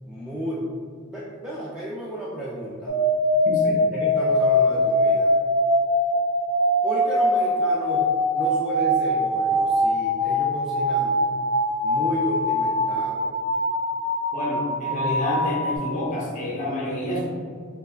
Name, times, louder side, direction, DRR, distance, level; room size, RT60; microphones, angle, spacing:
voice 1, 0.0-0.7 1.0-3.0 3.9-5.3 6.8-11.3 11.8-13.3, equal, 5° right, -7 dB, 0.4 m, -33 dB
sound 1, 2.9-15.8, left 1 dB, 65° left, 0.8 m, -22 dB
voice 2, 3.4-3.8 14.3-17.3, left 1 dB, 35° left, -4 dB, 1.0 m, -28 dB
6.3 x 2.3 x 2.4 m, 2.1 s
head